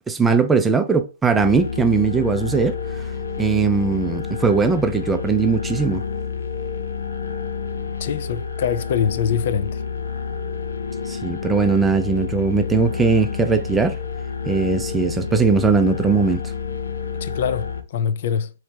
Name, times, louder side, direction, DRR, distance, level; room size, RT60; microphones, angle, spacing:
voice 1, 0.1-2.7 3.4-6.0 11.1-14.0 14.5-16.4, right 4 dB, 10° right, 0.4 m, -19 dB
sound 1, 1.4-17.8, left 6 dB, 80° left, 0.8 m, -29 dB
voice 2, 8.0-9.8 17.2-18.5, left 7 dB, 50° left, 0.5 m, -24 dB
3.2 x 3.0 x 4.5 m
hypercardioid pair, 130°, 0 cm